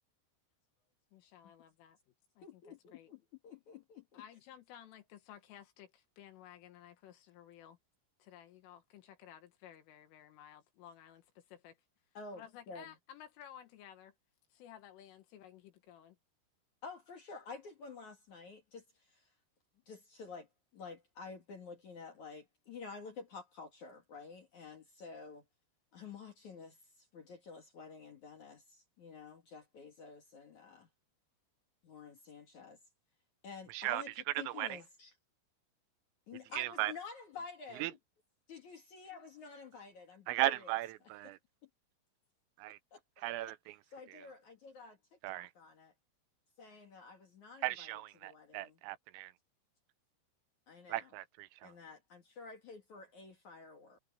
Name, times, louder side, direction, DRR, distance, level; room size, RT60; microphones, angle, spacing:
voice 1, 1.1-2.0 2.4-3.1 4.1-7.8 8.2-11.8 12.4-14.1 14.5-16.2, left 10 dB, 75° left, 4.1 m, -55 dB
voice 2, 2.4-4.2 12.1-12.9 16.8-18.8 19.1-19.3 19.9-20.5 20.7-25.4 25.9-30.9 31.8-32.8 33.4-35.1 36.3-38.0 38.5-40.7 41.2-41.3 41.6-41.7 42.9-43.0 43.9-45.0 45.3-45.9 46.6-48.8 50.7-51.1 51.6-54.0, left 4 dB, 50° left, 2.6 m, -50 dB
voice 3, 33.7-34.8 36.6-36.9 37.8-37.9 40.3-41.4 42.6-42.8 43.2-43.8 44.1-44.2 45.2-45.5 47.6-49.3 50.9-51.7, right 17 dB, 85° right, 3.4 m, -37 dB
omnidirectional pair, 5.9 m